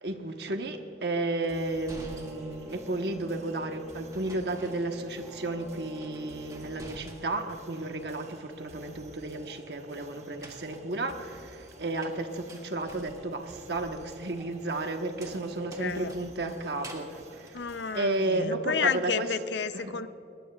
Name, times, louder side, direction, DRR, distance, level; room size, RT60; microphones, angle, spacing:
voice 1, 0.0-17.6 17.9-19.3 19.7-19.9, right 2 dB, 70° right, 5 dB, 1.2 m, -33 dB
sound 1, 1.4-3.1 4.1-5.4 5.7-7.6 7.9-8.7 10.1-18.4 18.8-19.4, right 1 dB, 20° right, 1.6 m, -50 dB
sound 2, 1.5-18.3, right 1 dB, 40° right, 1.2 m, -53 dB
sound 3, 1.7-6.8, equal, 5° right, 2.1 m, -50 dB
voice 2, 15.8-16.1 17.5-20.1, left 6 dB, 85° left, 13 dB, 0.6 m, -31 dB
19.5 x 19.5 x 2.4 m, 2.9 s
head